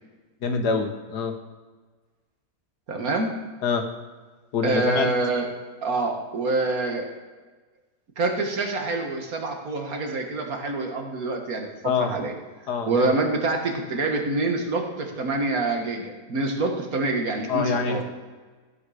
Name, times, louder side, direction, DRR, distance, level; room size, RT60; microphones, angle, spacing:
voice 1, 0.4-1.3 3.6-3.8 4.5-5.1 11.8-12.1 12.7-13.1 17.5-18.0, left 5 dB, 85° left, 6 dB, 1.7 m, -25 dB
voice 2, 2.9-3.4 4.6-5.5 5.8-7.1 8.2-11.7 12.0-12.3 12.9-18.0, right 2 dB, 60° right, 3 dB, 2.0 m, -26 dB
15.0 x 7.2 x 5.0 m, 1.4 s
omnidirectional pair, 1.7 m